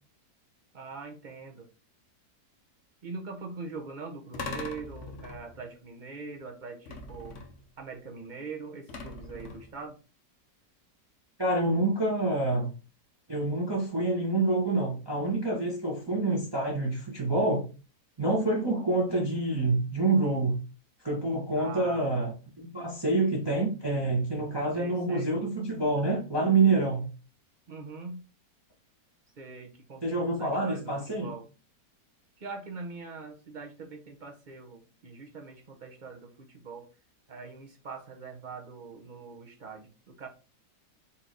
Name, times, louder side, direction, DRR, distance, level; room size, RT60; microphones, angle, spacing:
voice 1, 0.7-1.7 3.0-7.4 7.8-10.0 21.6-22.0 24.7-25.3 27.7-28.2 29.4-31.5 32.4-36.9 37.3-40.3, right 4 dB, 45° right, 0.6 m, -42 dB
sound 1, 4.3-5.7 6.8-7.7 8.9-9.8, left 3 dB, 55° left, 1.0 m, -41 dB
voice 2, 11.4-12.7 13.3-17.7 18.2-20.6 21.0-27.1 30.0-31.3, right 2 dB, 20° right, 0.9 m, -27 dB
4.3 x 3.0 x 3.9 m
omnidirectional pair, 1.8 m